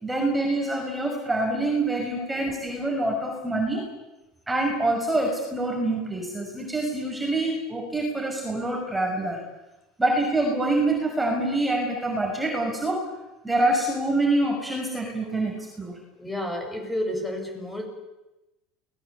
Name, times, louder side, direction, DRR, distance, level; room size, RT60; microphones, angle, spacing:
voice 1, 0.0-3.8 4.5-9.4 10.0-13.1 13.4-16.0, right 2 dB, 5° right, 0 dB, 5.9 m, -26 dB
voice 2, 16.2-17.9, left 1 dB, 10° left, 4 dB, 7.0 m, -30 dB
29.0 x 20.0 x 8.4 m, 1.0 s
supercardioid pair, 130°, 0 cm